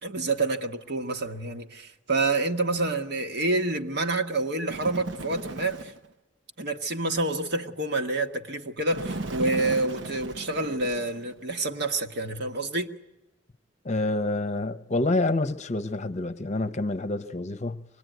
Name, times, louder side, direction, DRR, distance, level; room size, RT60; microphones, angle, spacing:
voice 1, 0.0-5.9 6.6-12.9, right 2 dB, 60° right, 1.5 m, -28 dB
Bird, 4.7-6.1 8.9-11.4, right 2 dB, 85° right, 1.0 m, -36 dB
voice 2, 13.8-17.9, left 2 dB, 40° left, 0.8 m, -27 dB
25.5 x 20.5 x 9.3 m
head